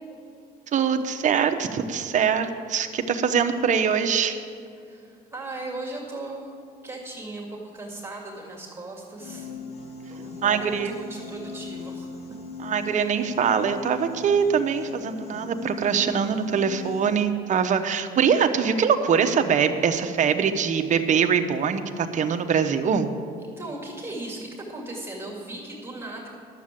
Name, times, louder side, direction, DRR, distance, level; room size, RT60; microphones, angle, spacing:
voice 1, 0.7-4.4 10.4-10.9 12.6-23.1, right 7 dB, 45° right, 7 dB, 0.9 m, -23 dB
voice 2, 4.8-6.5 6.8-9.5 10.1-12.1 23.4-26.3, right 2 dB, 15° right, -2 dB, 2.2 m, -37 dB
Piano, 9.2-17.2, left 4 dB, 75° left, 2.4 m, -39 dB
12.0 x 7.5 x 7.5 m, 2.4 s
cardioid pair, 110°, 17 cm